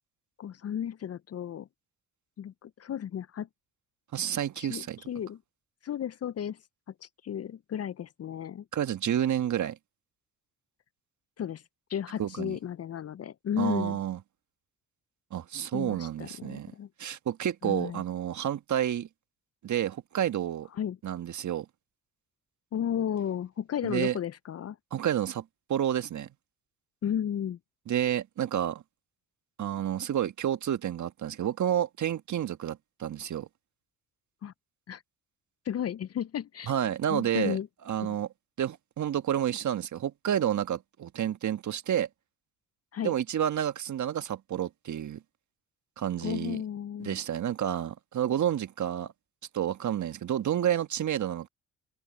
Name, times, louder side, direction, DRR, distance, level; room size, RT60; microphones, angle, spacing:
voice 1, 0.4-1.7 2.4-3.5 4.6-5.4 5.8-6.6 7.0-8.6 11.4-11.6 11.9-14.0 15.7-16.9 17.6-18.0 20.7-21.0 22.7-24.8 27.0-27.6 34.4-34.5 34.9-35.0 35.6-36.7 37.1-37.7 38.1-38.2 42.9-43.1 46.2-47.2, left 9 dB, 45° left, 0.7 m, -34 dB
voice 2, 4.1-5.0 8.7-9.8 12.2-12.6 13.6-14.2 15.3-16.7 17.0-19.1 19.6-20.7 21.0-21.7 23.8-24.2 24.9-26.3 27.9-28.8 29.6-33.5 36.7-37.6 37.9-38.3 38.6-42.1 43.0-45.2 46.0-46.6 47.0-49.1 49.5-51.5, right 10 dB, 55° right, 1.6 m, -30 dB
hypercardioid pair, 55°, 34 cm